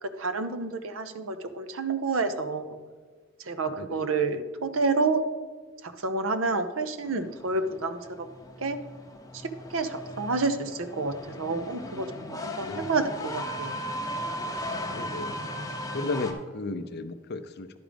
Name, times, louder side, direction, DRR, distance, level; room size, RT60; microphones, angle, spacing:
voice 1, 0.0-2.8 3.5-5.2 5.8-8.3 8.6-8.8 9.3-13.8, right 3 dB, 65° right, 10 dB, 0.7 m, -29 dB
sound 1, 7.0-16.3, equal, 15° left, 0.7 m, -37 dB
voice 2, 12.6-12.9 14.9-15.4 15.9-17.8, left 3 dB, 50° left, 11 dB, 0.5 m, -34 dB
11.0 x 5.0 x 5.1 m, 1.5 s
head